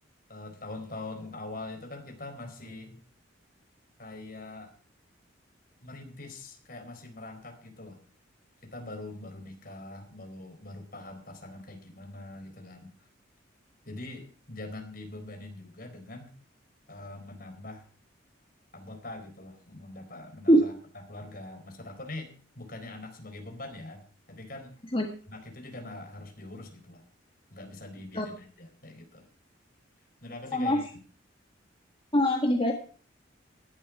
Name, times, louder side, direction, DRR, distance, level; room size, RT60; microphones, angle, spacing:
voice 1, 0.3-3.0 4.0-4.7 5.8-8.0 8.6-13.1 13.8-16.3 16.9-17.9 18.7-20.7 21.1-24.7 25.3-27.0 27.5-29.3 30.2-30.8, left 2 dB, 45° left, 4 dB, 4.3 m, -43 dB
voice 2, 30.5-30.8 32.1-32.7, equal, 25° left, 2 dB, 1.7 m, -22 dB
17.5 x 11.5 x 4.8 m, 0.41 s
head